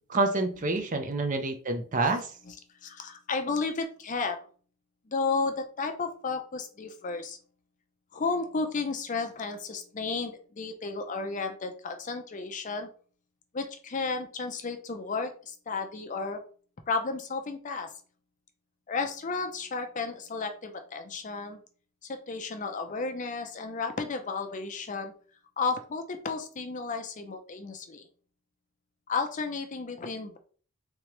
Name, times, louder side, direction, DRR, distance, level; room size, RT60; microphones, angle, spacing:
voice 1, 0.1-2.3, right 3 dB, 35° right, 7 dB, 0.5 m, -27 dB
voice 2, 2.8-4.4 5.1-7.4 8.1-12.9 13.5-16.4 16.9-17.9 18.9-21.6 22.0-25.1 25.6-28.1 29.1-30.4, left 4 dB, 35° left, 6 dB, 0.5 m, -33 dB
3.6 x 3.2 x 2.9 m, 0.42 s
head